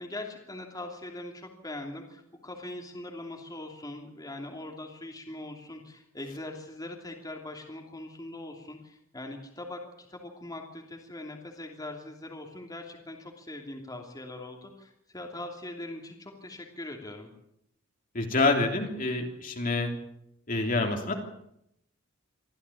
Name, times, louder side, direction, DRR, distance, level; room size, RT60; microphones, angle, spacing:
voice 1, 0.0-17.3, left 1 dB, 20° left, 2 dB, 3.0 m, -41 dB
voice 2, 18.1-19.9 20.5-21.1, left 3 dB, 40° left, 3 dB, 3.2 m, -27 dB
24.5 x 14.5 x 8.6 m, 0.77 s
head